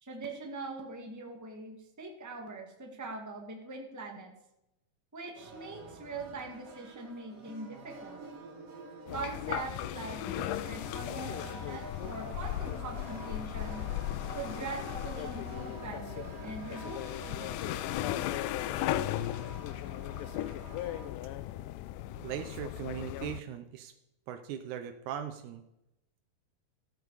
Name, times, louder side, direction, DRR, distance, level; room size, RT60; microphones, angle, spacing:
voice 1, 0.0-4.3 5.1-8.2 9.1-13.8 14.3-17.8, right 3 dB, 15° right, 1 dB, 0.5 m, -42 dB
sound 1, 5.4-21.1, right 3 dB, 45° right, 2.6 m, -48 dB
sound 2, 9.1-23.4, left 14 dB, 80° left, 1.9 m, -36 dB
voice 2, 22.2-23.9 24.3-25.6, right 9 dB, 75° right, 7 dB, 1.8 m, -39 dB
14.0 x 13.5 x 4.8 m, 0.87 s
omnidirectional pair, 4.3 m